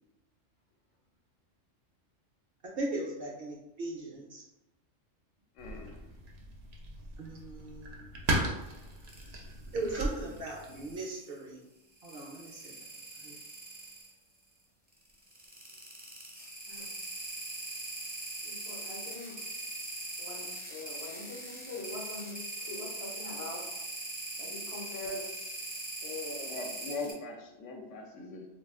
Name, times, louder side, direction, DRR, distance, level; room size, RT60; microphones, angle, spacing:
voice 1, 2.8-4.4 7.2-8.0 9.7-11.6 12.0-12.7 13.2-13.4, right 2 dB, 60° right, -3 dB, 0.7 m, -38 dB
voice 2, 5.6-6.0 26.5-28.4, left 3 dB, 75° left, 1 dB, 0.9 m, -40 dB
sound 1, 5.6-10.9, right 1 dB, 80° right, 0.3 m, -37 dB
sound 2, 8.6-9.3 9.9-11.2 12.0-14.1 15.2-27.1, right 2 dB, 10° right, 0.4 m, -41 dB
voice 3, 9.1-9.5 16.7-16.9 18.4-19.5 20.2-23.7 24.4-25.4 26.0-26.7, left 2 dB, 40° left, -5 dB, 0.6 m, -43 dB
2.4 x 2.3 x 3.4 m, 0.98 s
omnidirectional pair, 1.3 m